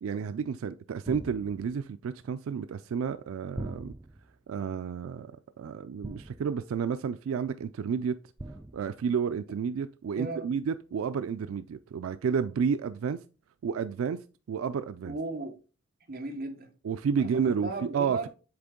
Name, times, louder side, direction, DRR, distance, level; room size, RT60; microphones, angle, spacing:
voice 1, 0.0-3.9 4.5-5.3 5.6-8.2 8.7-13.2 13.6-14.2 14.5-15.2 16.8-18.3, right 6 dB, 90° right, 0.3 m, -31 dB
sound 1, 1.0-1.9 3.5-4.4 6.0-6.7 8.4-9.0, right 1 dB, 15° right, 0.4 m, -42 dB
voice 2, 10.2-10.5 15.1-15.5 16.1-16.7 17.2-18.3, right 2 dB, 50° right, 1.1 m, -36 dB
8.0 x 3.5 x 3.7 m
head